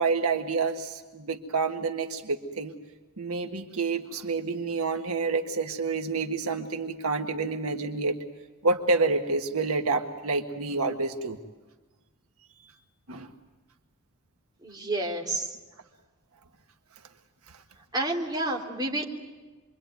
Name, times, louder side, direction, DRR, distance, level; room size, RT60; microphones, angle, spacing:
voice 1, 0.0-2.7 3.2-8.2 8.6-11.4 13.1-13.3, right 3 dB, 75° right, 4 dB, 1.5 m, -28 dB
voice 2, 14.6-15.6 17.9-19.0, right 2 dB, 20° right, -1 dB, 3.5 m, -29 dB
27.5 x 23.5 x 9.4 m, 1.2 s
head